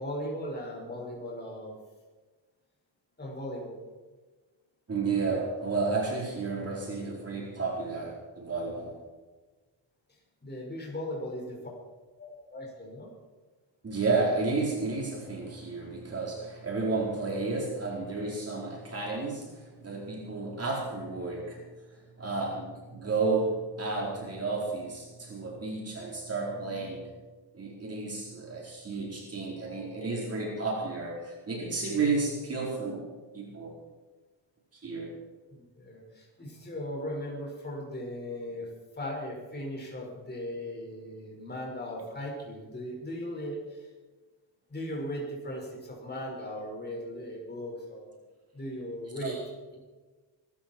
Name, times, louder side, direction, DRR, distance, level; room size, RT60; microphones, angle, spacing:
voice 1, 0.0-1.8 3.2-3.8 10.4-11.7 12.2-13.1 35.5-38.7 39.0-43.9 44.7-48.2 48.5-49.4, left 1 dB, 20° left, -2 dB, 5.7 m, -38 dB
voice 2, 4.9-8.9 13.8-21.6 22.2-27.1 27.5-33.1 33.3-33.7 34.8-35.1 49.2-49.4, right 3 dB, 30° right, -2 dB, 4.5 m, -32 dB
22.5 x 13.0 x 4.7 m, 1.3 s
cardioid pair, 130°, 45 cm